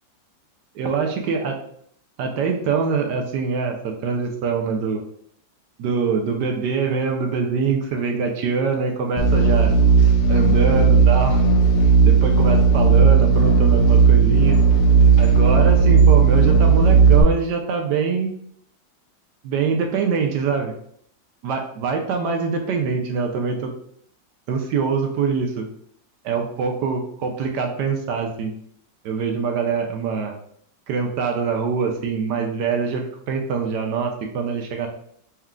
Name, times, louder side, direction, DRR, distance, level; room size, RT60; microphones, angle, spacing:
voice 1, 0.8-1.5 2.2-5.0 5.8-9.8 10.3-11.4 12.0-14.6 15.2-18.3 19.4-20.7 21.4-23.7 24.5-25.6 26.2-28.5 29.0-30.3 30.9-34.9, right 5 dB, 75° right, 3 dB, 1.1 m, -24 dB
sound 1, 9.2-17.2, right 5 dB, 70° left, 1.0 m, -15 dB
4.3 x 2.3 x 3.6 m, 0.66 s
omnidirectional pair, 2.0 m